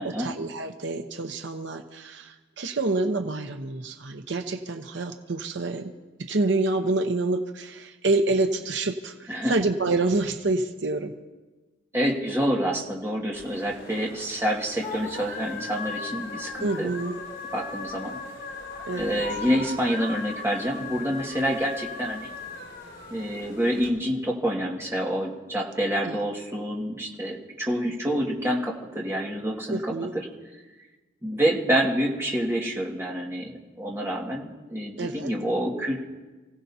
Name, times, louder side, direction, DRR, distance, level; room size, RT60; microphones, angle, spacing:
voice 1, 0.0-5.9 6.2-11.1 16.6-17.2 18.8-19.2 26.0-26.2 29.7-30.1 35.0-35.3, right 2 dB, 70° right, 5 dB, 0.8 m, -27 dB
voice 2, 11.9-16.9 17.5-18.2 19.0-22.4 23.1-29.9 31.2-36.0, equal, 15° right, -3 dB, 1.9 m, -27 dB
sound 1, 13.3-23.9, left 4 dB, 70° left, 3.2 m, -38 dB
29.0 x 16.5 x 2.8 m, 1.2 s
head